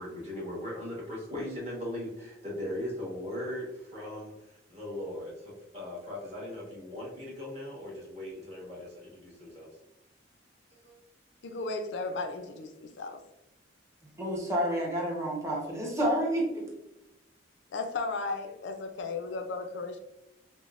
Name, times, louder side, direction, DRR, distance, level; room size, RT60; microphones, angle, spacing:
voice 1, 0.0-9.7 10.8-10.9, left 1 dB, 35° right, -5 dB, 1.3 m, -39 dB
voice 2, 11.4-13.2 17.7-20.0, left 3 dB, 70° left, 5 dB, 0.4 m, -35 dB
voice 3, 14.2-16.6, equal, 15° right, -3 dB, 0.8 m, -29 dB
5.0 x 2.0 x 2.4 m, 0.92 s
head